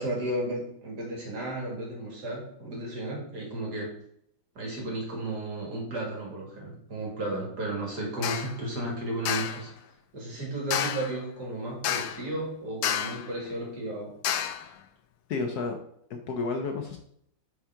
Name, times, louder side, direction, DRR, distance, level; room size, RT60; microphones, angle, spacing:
voice 1, 0.0-3.9 4.6-9.7 10.1-14.1, right 1 dB, 50° right, -2 dB, 2.6 m, -34 dB
sound 1, 8.2-8.5 9.3-9.6 10.7-11.2 11.8-12.3 12.8-13.3 14.2-14.7, left 10 dB, 90° left, 1.5 m, -29 dB
voice 2, 15.3-15.8 16.1-17.0, left 4 dB, 70° left, 5 dB, 1.0 m, -31 dB
5.0 x 4.5 x 5.6 m, 0.69 s
omnidirectional pair, 2.3 m